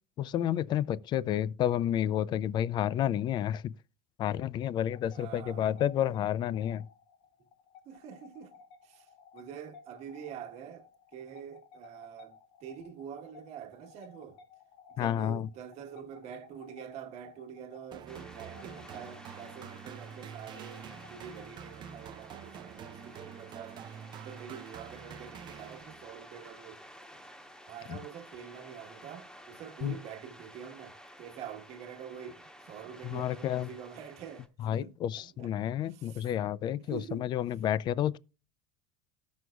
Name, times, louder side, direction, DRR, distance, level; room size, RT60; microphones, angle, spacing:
voice 1, 0.2-3.7 4.2-6.9 15.0-15.5 27.9-28.0 29.8-30.0 33.0-33.7 34.6-38.2, left 11 dB, 35° left, 0.3 m, -30 dB
sound 1, 4.7-24.0, left 6 dB, 80° left, 1.4 m, -58 dB
voice 2, 5.0-5.8 7.8-8.5 8.8-12.4 12.6-14.4 14.9-26.9 27.7-36.3 36.8-37.3, right 8 dB, 50° right, 1.3 m, -46 dB
sound 2, 17.9-26.2, right 8 dB, 35° right, 0.5 m, -47 dB
sound 3, 18.1-34.5, equal, 5° left, 0.9 m, -53 dB
17.5 x 6.2 x 2.3 m
cardioid pair, 145°, 14 cm